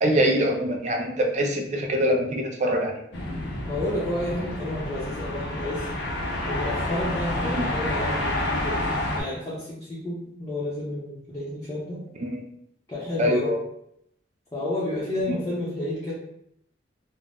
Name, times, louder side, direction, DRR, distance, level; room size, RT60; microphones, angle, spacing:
voice 1, 0.0-2.9 7.4-7.7 12.2-12.4 13.2-13.6, equal, 40° right, 3 dB, 0.4 m, -24 dB
sound 1, 3.1-9.2, left 1 dB, 65° left, 0.5 m, -29 dB
voice 2, 3.7-5.9 6.5-8.9 9.1-12.0 12.9-13.5 14.5-16.1, left 1 dB, 20° left, -9 dB, 0.7 m, -30 dB
2.5 x 2.1 x 3.4 m, 0.74 s
head